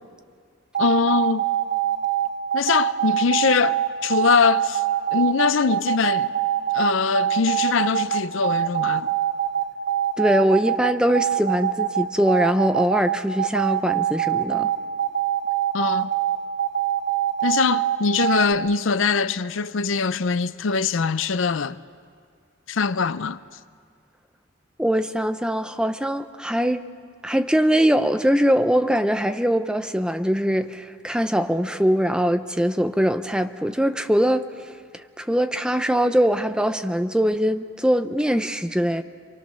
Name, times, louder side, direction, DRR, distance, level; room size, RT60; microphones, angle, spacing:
sound 1, 0.7-18.5, right 12 dB, 55° right, 1.0 m, -23 dB
voice 1, 0.8-1.4 2.5-4.8 5.1-6.3 6.7-9.1 15.7-16.1 17.4-21.8 22.7-23.4, left 5 dB, 75° left, 0.5 m, -22 dB
voice 2, 10.2-14.7 24.8-26.8 27.2-34.7 35.2-39.0, equal, 5° right, 0.7 m, -22 dB
28.0 x 23.5 x 6.3 m
head